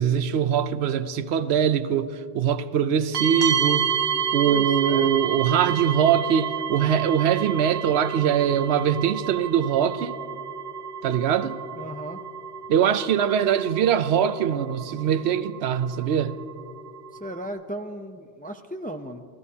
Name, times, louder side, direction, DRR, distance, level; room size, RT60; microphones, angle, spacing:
voice 1, 0.0-3.9 4.3-10.1 11.0-11.6 12.7-16.3, right 8 dB, 85° right, 0.9 m, -22 dB
sound 1, 3.1-17.5, right 7 dB, 65° right, 1.2 m, -30 dB
voice 2, 4.4-5.1 11.8-12.2 17.1-19.2, right 1 dB, 15° left, 0.4 m, -36 dB
28.0 x 15.5 x 2.8 m
omnidirectional pair, 1.1 m